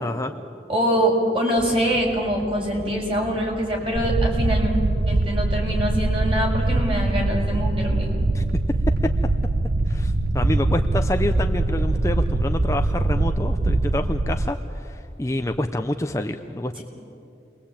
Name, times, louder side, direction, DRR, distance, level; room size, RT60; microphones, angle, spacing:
voice 1, 0.0-0.3 8.3-8.5 9.9-16.8, left 1 dB, 15° left, 6 dB, 0.7 m, -28 dB
voice 2, 0.7-4.7 5.1-8.1 16.8-16.9, equal, 30° right, -1 dB, 6.1 m, -24 dB
sound 1, 1.6-12.8, right 1 dB, 65° right, 2.1 m, -39 dB
sound 2, 4.0-14.5, right 2 dB, 85° right, 1.1 m, -22 dB
29.0 x 22.5 x 8.7 m, 2.7 s
head